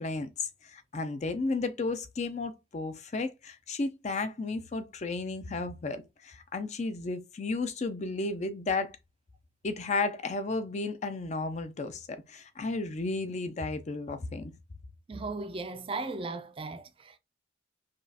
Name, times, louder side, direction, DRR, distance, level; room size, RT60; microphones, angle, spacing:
voice 1, 0.0-9.0 9.6-14.5, left 3 dB, 35° left, 0.4 m, -33 dB
voice 2, 15.1-17.2, right 3 dB, 30° right, 0.4 m, -37 dB
4.9 x 2.4 x 2.7 m
head